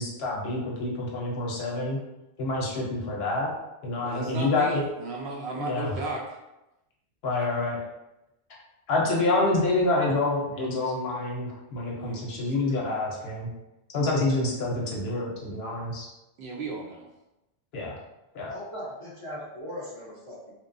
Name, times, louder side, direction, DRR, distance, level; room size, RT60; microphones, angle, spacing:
voice 1, 0.0-2.0 2.4-3.5 3.8-4.8 5.6-5.9 7.2-7.8 8.9-13.5 13.9-16.1 17.7-17.9 18.3-18.5, left 2 dB, 65° left, -2 dB, 0.7 m, -27 dB
voice 2, 4.0-6.4 10.9-11.0 12.0-12.5 16.4-17.1, right 2 dB, 65° right, -2 dB, 0.8 m, -35 dB
voice 3, 18.5-20.5, equal, 35° right, -7 dB, 0.6 m, -39 dB
2.9 x 2.2 x 2.5 m, 0.94 s
omnidirectional pair, 1.3 m